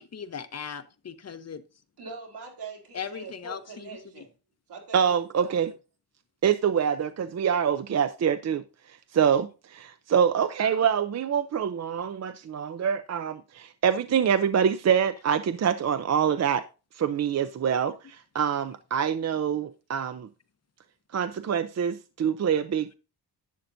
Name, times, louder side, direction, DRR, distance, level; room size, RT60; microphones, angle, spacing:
voice 1, 0.0-1.6 2.9-3.9 10.6-10.9, left 7 dB, 40° left, 0.8 m, -38 dB
voice 2, 2.0-4.3 4.7-5.7, right 4 dB, 80° right, 3.8 m, -43 dB
voice 3, 4.9-5.7 6.4-8.6 9.1-16.6 17.0-20.3 21.1-22.9, right 8 dB, 40° right, 0.5 m, -25 dB
11.0 x 9.1 x 2.6 m
wide cardioid pair, 150°, 39 cm